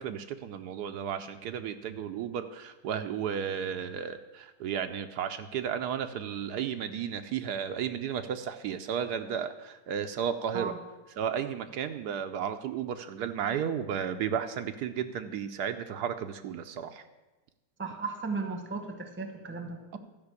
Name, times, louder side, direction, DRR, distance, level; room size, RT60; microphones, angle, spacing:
voice 1, 0.0-10.7 11.2-17.0, right 8 dB, 75° right, 8 dB, 1.1 m, -33 dB
voice 2, 17.8-20.0, right 4 dB, 10° right, 6 dB, 0.9 m, -36 dB
12.5 x 5.4 x 8.1 m, 1.1 s
omnidirectional pair, 1.8 m